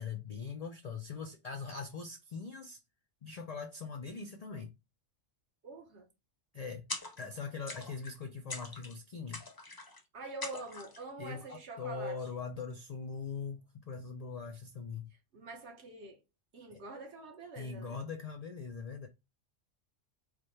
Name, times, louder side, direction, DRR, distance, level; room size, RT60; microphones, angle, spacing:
voice 1, 0.0-2.8 3.2-4.7 6.5-6.9 7.2-9.4 11.2-15.1 16.7-16.8 17.6-19.1, left 5 dB, 70° left, 0.3 m, -41 dB
voice 2, 5.6-6.1 10.1-12.3 15.3-16.2 16.5-18.0, right 3 dB, 65° right, 1.3 m, -45 dB
sound 1, 6.9-7.4 7.7-8.2 8.5-9.0 9.3-10.0 10.4-11.0, left 2 dB, 25° left, 0.6 m, -43 dB
4.8 x 2.2 x 3.1 m
omnidirectional pair, 1.3 m